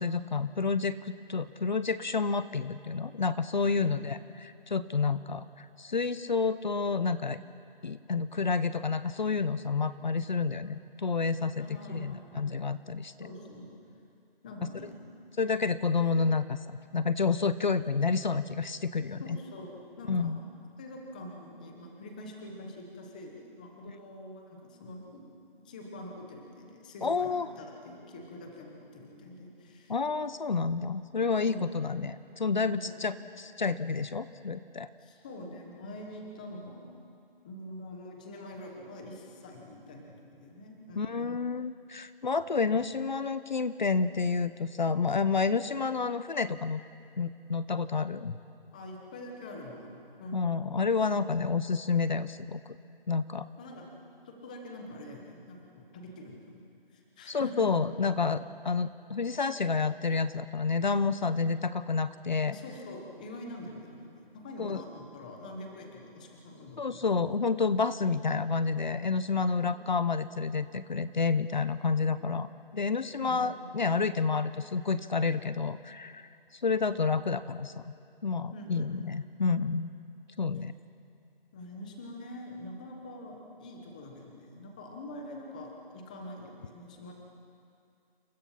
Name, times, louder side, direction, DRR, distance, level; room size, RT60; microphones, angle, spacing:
voice 1, 0.0-7.4 7.8-13.1 15.4-19.4 20.1-20.4 27.0-27.5 29.9-34.9 41.0-46.8 47.2-48.4 50.3-52.6 53.1-53.5 57.3-62.6 64.6-64.8 66.8-77.8 78.2-79.9 80.4-80.7, left 4 dB, 50° left, 14 dB, 0.8 m, -29 dB
voice 2, 3.6-4.3 11.6-12.6 13.2-13.8 14.4-15.0 19.2-20.3 20.8-25.2 25.6-29.9 31.3-31.6 32.6-33.0 35.0-36.9 37.4-41.5 48.7-50.6 53.6-53.8 54.2-56.6 56.9-57.7 62.4-67.1 69.5-69.8 73.2-73.5 78.5-78.9 81.5-87.1, left 1 dB, 10° left, 1 dB, 1.1 m, -45 dB
28.5 x 25.5 x 5.7 m, 2.5 s
hypercardioid pair, 175°, 29 cm